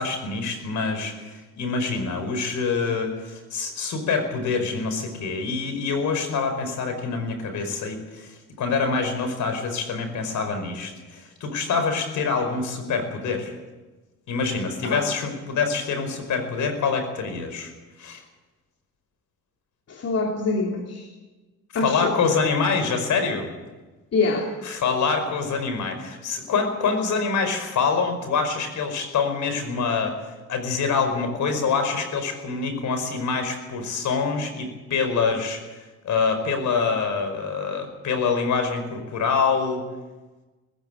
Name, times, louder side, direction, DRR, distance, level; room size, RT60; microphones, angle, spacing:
voice 1, 0.0-13.5 14.3-17.7 18.0-18.2 21.8-23.5 24.6-30.2 30.5-35.6 36.0-39.8, left 5 dB, 75° left, 7 dB, 5.1 m, -25 dB
voice 2, 19.9-21.1 21.7-22.1 24.1-24.5, left 3 dB, 55° left, 1 dB, 3.0 m, -25 dB
20.0 x 15.5 x 9.2 m, 1.2 s
cardioid pair, 90°, 30 cm